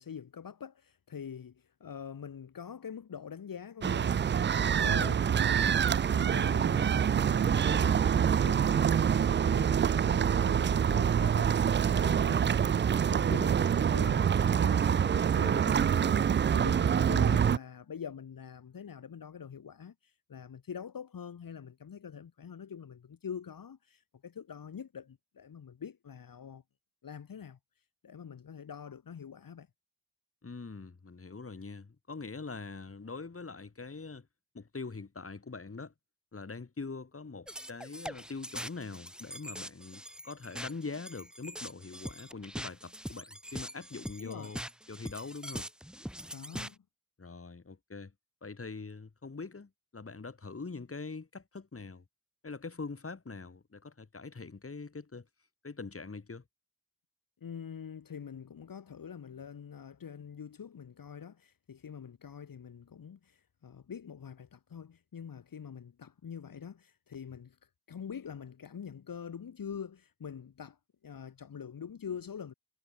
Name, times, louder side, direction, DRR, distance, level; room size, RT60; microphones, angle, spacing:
voice 1, 0.0-26.6 27.0-27.6 28.0-29.7 44.2-44.5 46.3-46.8 57.4-67.6 67.9-72.5, left 7 dB, 65° left, 2.9 m, -45 dB
sound 1, 3.8-17.6, right 8 dB, 30° right, 0.4 m, -26 dB
voice 2, 30.4-34.3 34.5-35.9 36.3-44.6 44.9-45.7 47.2-48.1 48.4-52.0 52.4-55.3 55.6-56.4, left 4 dB, 35° left, 4.6 m, -43 dB
sound 2, 37.5-46.7, equal, ahead, 7.0 m, -43 dB
cardioid pair, 55°, 37 cm